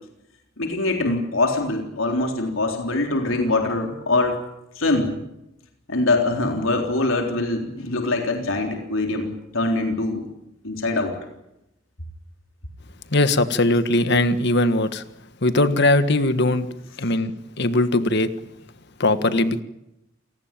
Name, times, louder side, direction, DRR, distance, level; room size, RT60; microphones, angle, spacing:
voice 1, 0.6-4.4 4.8-5.1 5.9-10.2 10.6-11.1, left 2 dB, 90° left, 3 dB, 3.7 m, -23 dB
voice 2, 13.1-15.0 15.4-16.7 17.0-18.3 19.0-19.6, left 2 dB, 60° left, 11 dB, 1.6 m, -20 dB
28.0 x 19.0 x 9.0 m, 0.88 s
head